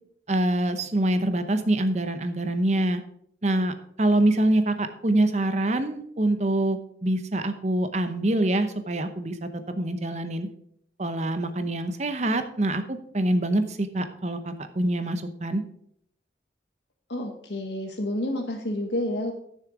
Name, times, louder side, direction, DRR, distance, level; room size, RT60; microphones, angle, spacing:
voice 1, 0.3-3.0 3.4-10.5 11.0-15.6, right 1 dB, 40° right, 9 dB, 0.8 m, -25 dB
voice 2, 17.1-19.3, left 1 dB, 75° left, 4 dB, 1.2 m, -29 dB
10.5 x 6.5 x 4.9 m, 0.69 s
head